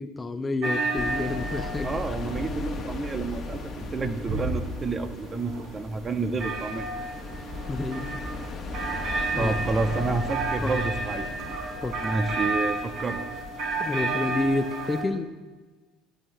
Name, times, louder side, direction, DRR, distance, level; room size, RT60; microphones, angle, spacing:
voice 1, 0.0-1.9 7.7-8.0 9.3-9.5 10.6-10.7 11.8-11.9 13.8-15.3, left 2 dB, 20° left, 10 dB, 0.9 m, -29 dB
sound 1, 0.6-15.0, right 3 dB, 60° right, 4.4 m, -32 dB
sound 2, 0.9-14.9, left 3 dB, 40° left, 1.8 m, -38 dB
voice 2, 1.8-6.9 9.4-11.3 12.0-13.2, right 3 dB, 30° right, 7 dB, 1.5 m, -29 dB
12.5 x 9.4 x 7.9 m, 1.3 s
hypercardioid pair, 65°, 0 cm